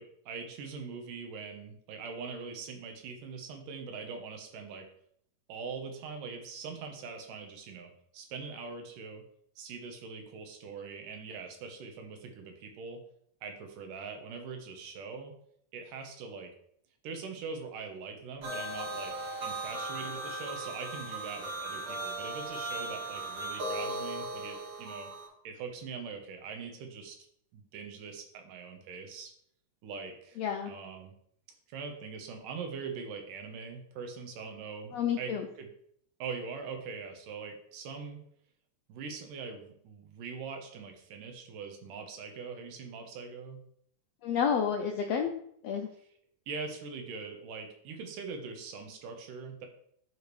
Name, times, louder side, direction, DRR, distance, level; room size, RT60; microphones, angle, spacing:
voice 1, 0.0-4.9 5.5-9.2 9.6-13.0 13.4-15.3 15.7-16.5 17.0-25.1 25.4-27.2 27.5-29.3 29.8-30.4 30.7-31.1 31.7-35.7 36.2-38.2 38.9-43.6 46.5-49.7, right 5 dB, 85° right, 4 dB, 2.7 m, -42 dB
sound 1, 18.4-25.3, right 2 dB, 50° right, 1.3 m, -37 dB
voice 2, 30.4-30.7 34.9-35.5 44.2-45.4 45.6-45.9, left 7 dB, 80° left, 3 dB, 1.5 m, -30 dB
10.0 x 4.9 x 3.2 m, 0.68 s
omnidirectional pair, 3.7 m